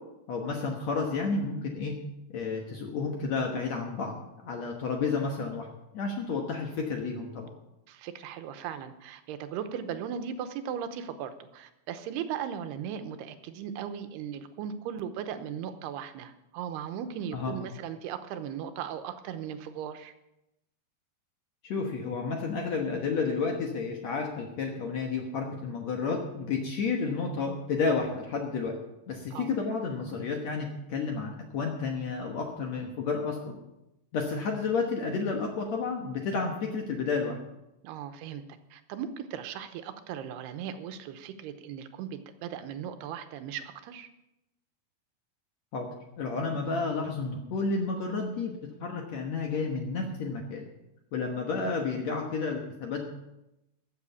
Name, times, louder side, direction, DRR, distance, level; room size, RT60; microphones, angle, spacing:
voice 1, 0.3-2.0 2.3-5.7 5.9-7.5 17.3-17.6 21.6-28.7 29.1-33.6 34.1-37.4 45.7-45.9 46.2-48.5 48.8-50.6 51.1-53.1, left 4 dB, 60° left, 2 dB, 1.9 m, -31 dB
voice 2, 7.9-20.1 29.3-29.5 37.8-38.4 38.7-44.1, right 8 dB, 85° right, 9 dB, 2.9 m, -37 dB
13.5 x 7.9 x 7.0 m, 0.90 s
omnidirectional pair, 4.6 m